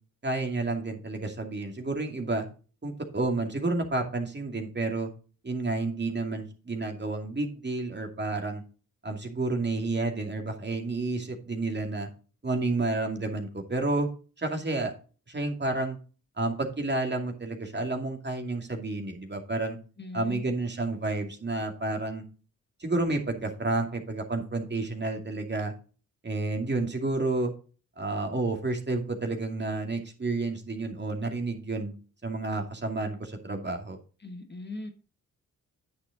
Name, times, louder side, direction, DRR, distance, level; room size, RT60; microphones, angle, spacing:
voice 1, 0.2-2.5 2.8-5.1 5.4-8.6 9.0-12.1 12.4-14.1 14.4-14.9 15.3-16.0 16.4-19.8 20.1-22.2 22.8-25.7 26.2-27.5 28.0-31.9 32.2-34.0, right 2 dB, 30° right, 3 dB, 2.4 m, -30 dB
voice 2, 20.0-20.5 34.2-34.9, left 3 dB, 30° left, 6 dB, 1.4 m, -39 dB
9.7 x 6.6 x 3.9 m, 0.37 s
supercardioid pair, 50°, 33 cm